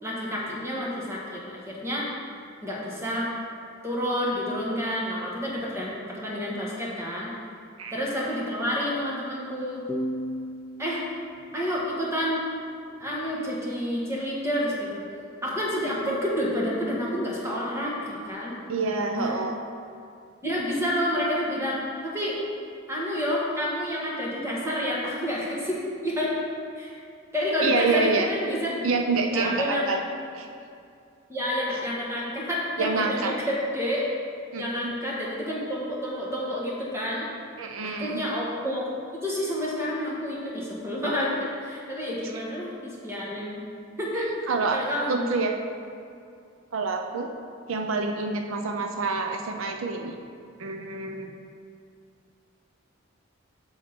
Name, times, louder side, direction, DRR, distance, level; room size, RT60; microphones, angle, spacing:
voice 1, 0.0-2.0 2.6-3.3 3.8-7.3 7.9-9.8 10.8-11.0 11.5-12.4 13.0-15.0 15.4-18.6 19.2-19.4 20.4-22.4 22.9-26.3 26.7-27.0 27.3-28.9 29.3-30.0 31.3-34.1 34.5-37.3 37.8-43.6 44.0-44.3 44.7-45.3 48.5-48.6, equal, 15° right, -5 dB, 1.5 m, -29 dB
sound 1, 9.9-13.3, equal, 15° left, 0.5 m, -37 dB
voice 2, 18.7-19.6 27.6-28.3 28.8-30.0 30.3-30.5 32.8-33.3 34.5-34.9 37.6-38.2 44.5-44.8 45.1-45.6 46.7-47.3 47.7-50.2 50.6-51.4, right 4 dB, 80° right, 4 dB, 0.6 m, -27 dB
7.4 x 7.1 x 4.4 m, 2.4 s
head